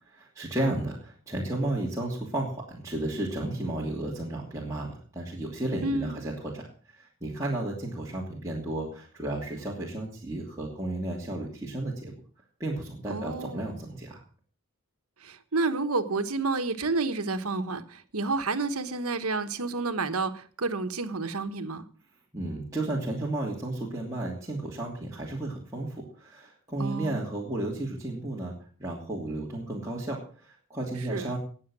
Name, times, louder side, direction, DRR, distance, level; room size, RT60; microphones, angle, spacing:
voice 1, 0.1-12.1 12.6-14.2 22.3-28.5 28.8-31.4, right 1 dB, 15° right, 2.8 m, -33 dB
voice 2, 5.8-6.2 13.1-13.8 15.2-21.8 26.8-27.2 31.1-31.3, right 3 dB, 90° right, 1.4 m, -30 dB
20.0 x 7.4 x 6.2 m
head